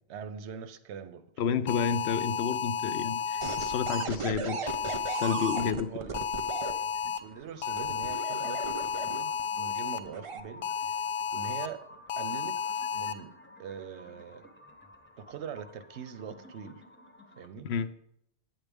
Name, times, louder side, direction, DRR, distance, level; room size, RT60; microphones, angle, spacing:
voice 1, 0.0-1.3 5.9-6.2 7.0-11.0 11.3-12.6 12.9-13.3 13.6-14.5 15.2-16.8 17.4-17.8, right 7 dB, 90° right, 0.9 m, -43 dB
voice 2, 1.4-4.6 5.2-5.9 17.6-17.9, left 6 dB, 75° left, 0.8 m, -30 dB
sound 1, 1.7-4.0 4.7-5.7 6.1-7.2 7.6-10.0 10.6-11.7 12.1-13.1, left 6 dB, 60° left, 0.3 m, -32 dB
sound 2, 3.2-17.5, left 1 dB, 10° left, 0.8 m, -53 dB
sound 3, 3.4-6.7 7.8-9.4 10.1-10.4, right 5 dB, 45° right, 0.4 m, -36 dB
9.1 x 7.3 x 3.5 m
omnidirectional pair, 1.1 m